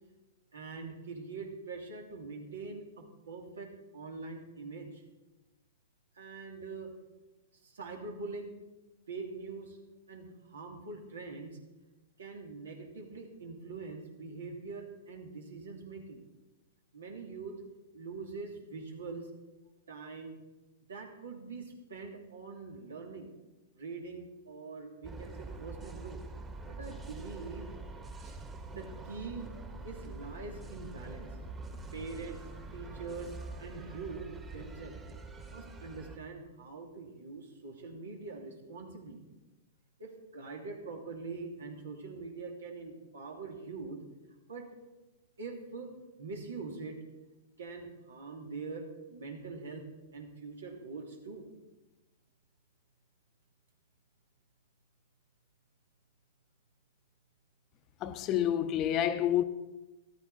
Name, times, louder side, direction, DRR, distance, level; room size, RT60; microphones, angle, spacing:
voice 1, 0.5-5.0 6.2-6.9 7.6-8.5 9.1-9.8 10.1-11.5 12.2-16.2 16.9-17.7 17.9-19.3 19.9-20.3 20.9-23.3 23.7-26.2 26.7-27.7 28.2-28.4 28.7-29.5 29.8-31.3 31.9-32.4 32.7-33.3 33.6-35.0 35.4-39.2 40.0-44.0 44.5-44.7 45.4-45.9 46.2-47.0 47.6-51.5, right 4 dB, 85° right, 2.7 m, -43 dB
sound 1, 25.0-36.2, right 3 dB, 20° right, 1.6 m, -45 dB
voice 2, 58.0-59.4, left 11 dB, 35° left, 0.7 m, -28 dB
13.5 x 13.0 x 4.2 m
hypercardioid pair, 115°, 0 cm